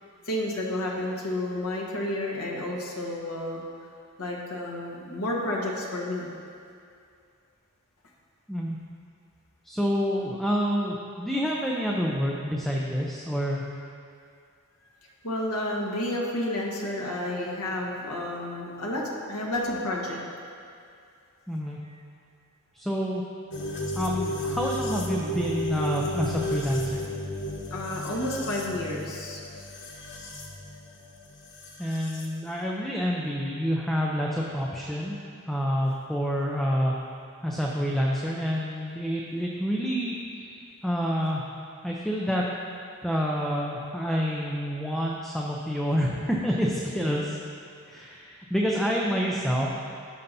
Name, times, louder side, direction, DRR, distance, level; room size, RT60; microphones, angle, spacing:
voice 1, 0.2-3.6 4.2-6.3 14.8-14.9 15.2-20.2 21.8-22.0 27.7-29.6 30.2-30.4 45.0-45.1, left 1 dB, 80° left, -3 dB, 1.3 m, -31 dB
voice 2, 9.6-13.6 21.5-21.8 22.7-23.2 24.0-27.0 31.8-35.2 35.5-36.9 37.4-40.1 40.4-41.5 41.8-42.5 43.0-47.4 47.9-49.8, equal, ahead, -3 dB, 0.5 m, -28 dB
sound 1, 23.5-32.3, left 1 dB, 55° left, 1.0 m, -33 dB
16.0 x 5.6 x 2.7 m, 2.3 s
head